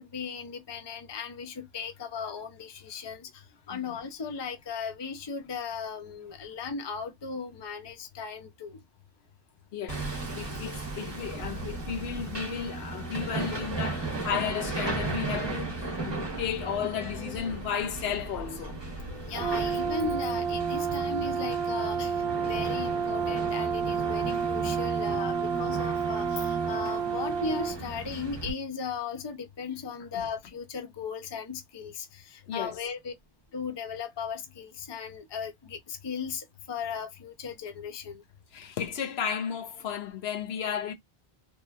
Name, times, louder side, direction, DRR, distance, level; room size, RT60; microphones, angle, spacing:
voice 1, 0.0-8.8 19.2-33.1 33.5-38.2, left 6 dB, 35° left, 0.5 m, -37 dB
voice 2, 9.7-18.8 30.1-30.2 32.5-32.8 38.5-40.9, left 8 dB, 80° left, 0.8 m, -34 dB
Hammer, 9.9-28.5, right 3 dB, 30° right, 0.8 m, -36 dB
Brass instrument, 19.3-27.8, right 6 dB, 85° right, 0.9 m, -30 dB
2.9 x 2.2 x 2.3 m
omnidirectional pair, 1.0 m